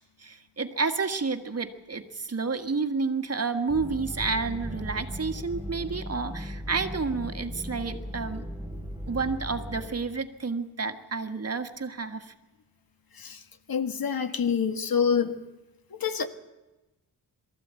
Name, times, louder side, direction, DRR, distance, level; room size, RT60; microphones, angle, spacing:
voice 1, 0.2-8.4 9.1-12.3, right 4 dB, 40° right, 7 dB, 1.5 m, -30 dB
sound 1, 3.7-9.9, equal, 10° right, 8.0 m, -37 dB
voice 2, 13.7-15.4 15.9-16.3, left 7 dB, 60° left, 8 dB, 1.7 m, -26 dB
22.5 x 14.0 x 8.3 m, 1.0 s
cardioid pair, 90°, 39 cm